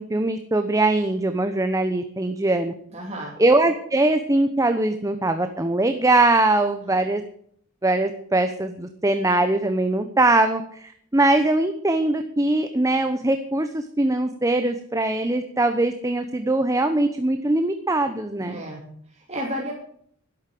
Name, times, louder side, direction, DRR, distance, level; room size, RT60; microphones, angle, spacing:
voice 1, 0.0-2.7 3.4-7.2 7.8-18.6, right 2 dB, 15° right, 7 dB, 0.9 m, -21 dB
voice 2, 2.9-3.3 6.8-7.0 18.4-18.8 19.1-19.7, equal, 30° right, -3 dB, 3.1 m, -32 dB
12.0 x 12.0 x 7.7 m, 0.64 s
head